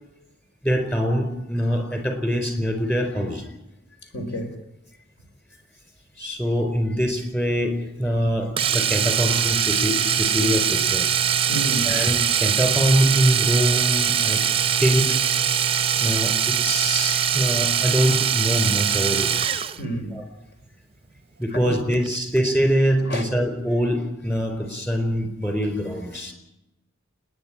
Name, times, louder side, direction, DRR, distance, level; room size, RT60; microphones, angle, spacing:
voice 1, 0.6-3.5 6.2-11.1 11.8-14.4 14.8-19.3 20.1-20.2 21.4-26.3, equal, 10° left, 4.5 m, -24 dB
voice 2, 4.1-4.6 11.5-12.0 19.8-20.1 21.5-22.0 23.1-23.2, equal, 50° left, 4.9 m, -29 dB
Domestic sounds home sounds, 8.6-19.8 21.9-22.1 22.4-22.5, right 8 dB, 25° right, 0.8 m, -22 dB
29.5 x 10.5 x 10.0 m
head